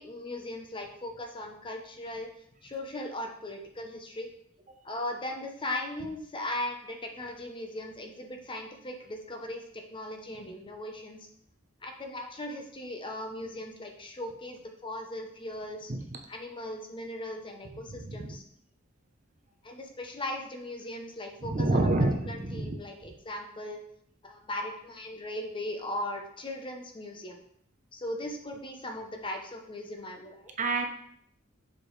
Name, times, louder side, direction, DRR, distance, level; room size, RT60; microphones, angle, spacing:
voice 1, 0.0-2.3 2.6-4.3 4.8-11.3 11.8-15.9 16.3-18.4 19.6-21.9 22.3-23.8 24.2-27.4 27.9-30.5, left 1 dB, 25° left, 3 dB, 0.7 m, -38 dB
voice 2, 21.4-22.8 30.6-30.9, right 2 dB, 40° right, 5 dB, 0.7 m, -27 dB
6.7 x 4.9 x 3.2 m, 0.69 s
head